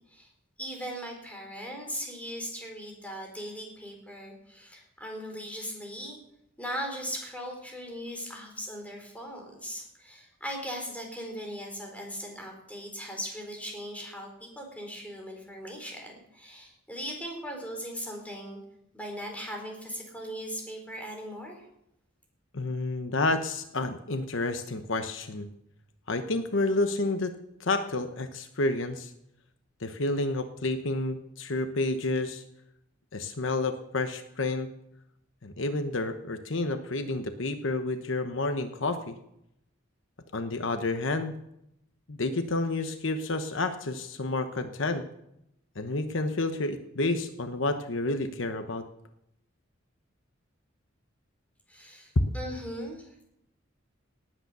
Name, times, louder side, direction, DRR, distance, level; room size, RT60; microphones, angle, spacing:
voice 1, 0.6-6.2 6.6-18.6 18.9-21.6 51.7-53.2, equal, 5° left, 1 dB, 4.2 m, -39 dB
voice 2, 22.5-25.5 26.1-29.1 29.8-32.4 33.1-34.7 35.4-39.1 40.3-41.4 42.1-45.0 45.8-48.8, left 2 dB, 70° left, 8 dB, 1.0 m, -30 dB
18.5 x 9.1 x 6.8 m, 0.81 s
head